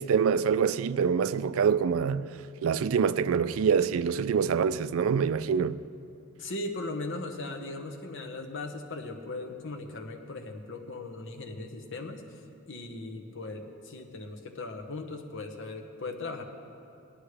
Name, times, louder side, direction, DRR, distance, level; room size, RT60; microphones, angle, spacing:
voice 1, 0.0-2.3 2.6-5.8, right 6 dB, 75° right, 0.4 m, -25 dB
voice 2, 6.4-12.4 12.7-16.4, left 2 dB, 60° left, 1.1 m, -38 dB
18.5 x 11.5 x 3.3 m
head